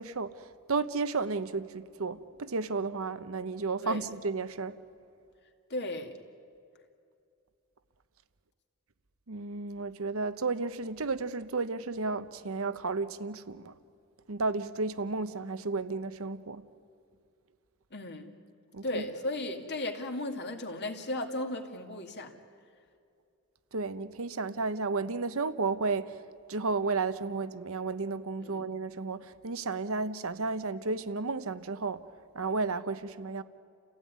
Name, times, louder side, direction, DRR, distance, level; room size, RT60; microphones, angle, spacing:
voice 1, 0.0-4.8 9.3-13.7 14.3-16.6 18.7-19.0 23.7-26.2 26.5-32.1 32.3-33.4, right 3 dB, 70° right, 0.9 m, -33 dB
voice 2, 5.7-6.1 17.9-18.3 18.8-22.4 28.4-28.7, left 1 dB, 50° left, 2.3 m, -35 dB
30.0 x 16.0 x 9.4 m
head